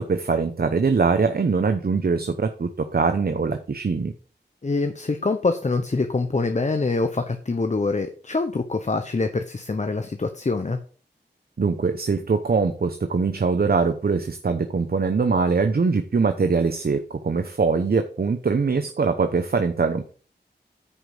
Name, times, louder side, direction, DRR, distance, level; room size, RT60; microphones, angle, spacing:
voice 1, 0.0-4.1 11.6-20.1, right 4 dB, 60° right, 8 dB, 0.8 m, -22 dB
voice 2, 4.6-10.8, left 3 dB, 40° left, 8 dB, 0.8 m, -25 dB
9.9 x 5.1 x 5.0 m, 0.41 s
wide cardioid pair, 65°, 18 cm